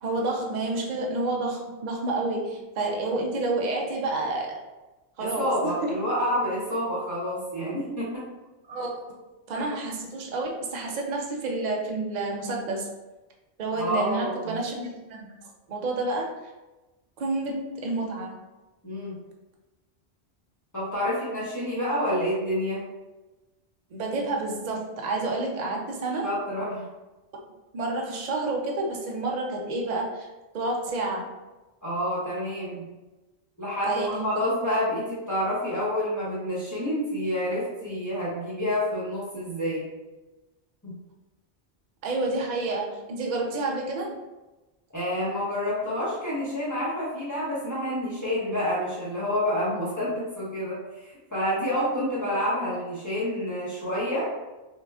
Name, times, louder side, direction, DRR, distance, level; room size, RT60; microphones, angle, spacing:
voice 1, 0.0-4.6 5.2-6.0 8.7-8.9 9.5-12.9 13.6-15.3 15.7-16.3 17.2-18.3 23.9-26.3 27.7-30.3 30.5-31.3 33.9-34.3 42.0-44.1, right 2 dB, 50° right, 0 dB, 0.7 m, -29 dB
voice 2, 5.2-8.2 9.5-9.7 13.8-14.6 18.8-19.1 20.7-22.8 26.2-26.8 31.8-32.9 33.6-39.8 40.8-40.9 44.9-54.3, equal, 15° left, -9 dB, 1.2 m, -28 dB
5.3 x 2.5 x 2.3 m, 1.1 s
omnidirectional pair, 1.1 m